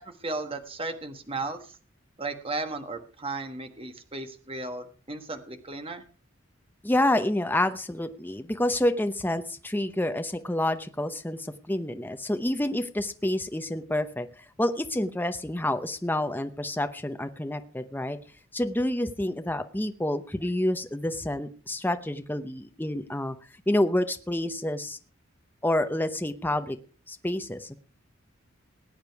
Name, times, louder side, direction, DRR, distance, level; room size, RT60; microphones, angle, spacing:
voice 1, 0.0-1.8 2.2-6.0, right 3 dB, 25° right, 7 dB, 1.4 m, -35 dB
voice 2, 6.8-14.3 14.6-18.2 18.5-23.4 23.7-25.0 25.6-26.8 27.1-27.8, left 1 dB, 10° left, 8 dB, 0.8 m, -28 dB
19.5 x 8.8 x 4.7 m, 0.40 s
head